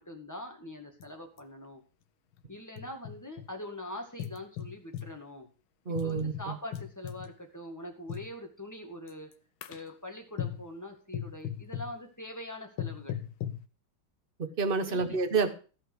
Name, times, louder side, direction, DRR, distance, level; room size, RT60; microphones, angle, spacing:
voice 1, 0.0-1.8 2.5-5.5 6.0-9.3 9.7-13.2 14.8-15.2, left 1 dB, 10° left, 2 dB, 1.8 m, -43 dB
sound 1, 1.0-1.1 1.4-1.5 2.3-3.5 4.2-5.2 6.0-7.3 8.1-8.3 9.1-9.3 9.6-9.9 10.4-10.7 11.1-12.0 12.8-13.7, left 10 dB, 85° left, 1.6 m, -38 dB
voice 2, 5.9-6.5 14.4-15.5, right 4 dB, 35° right, 8 dB, 1.1 m, -29 dB
14.0 x 5.7 x 6.2 m, 0.37 s
omnidirectional pair, 2.2 m